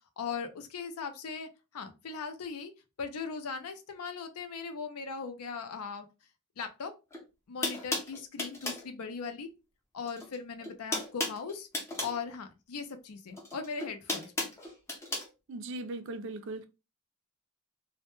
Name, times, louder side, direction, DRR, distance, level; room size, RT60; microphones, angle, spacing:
voice 1, 0.2-2.7 3.0-6.1 6.6-6.9 7.5-9.5 9.9-11.7 12.0-14.5, left 5 dB, 80° left, 0.5 m, -39 dB
sound 1, 7.1-7.2 7.6-8.9 10.0-10.4 10.6-12.2 13.3-15.3, left 2 dB, 10° left, 0.5 m, -34 dB
voice 2, 15.5-16.7, right 2 dB, 55° right, 0.4 m, -38 dB
2.1 x 2.1 x 2.9 m
head